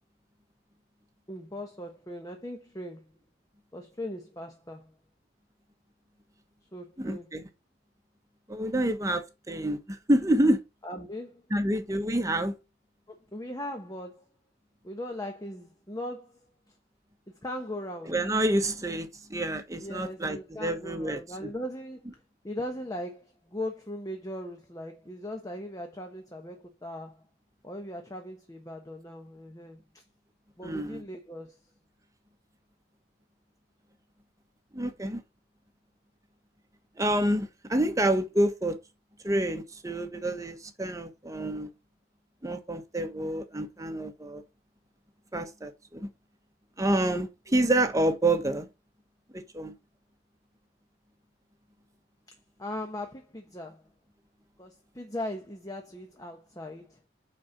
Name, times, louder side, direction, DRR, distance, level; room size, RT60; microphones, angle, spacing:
voice 1, 1.3-3.2 3.7-4.9 6.7-7.3 10.8-11.5 13.1-14.2 14.8-16.4 16.7-16.8 17.3-18.2 19.8-27.2 27.6-30.0 30.6-31.6 47.5-47.6 52.3-53.9 54.6-57.0, left 1 dB, 20° left, 1.1 m, -39 dB
voice 2, 7.0-7.4 8.5-10.6 11.5-12.5 18.1-21.5 30.6-31.0 34.7-35.2 37.0-38.8 39.2-41.7 42.4-44.4 45.3-46.1 46.8-48.7 49.3-49.7, right 1 dB, 15° right, 1.2 m, -28 dB
9.5 x 4.4 x 6.6 m
head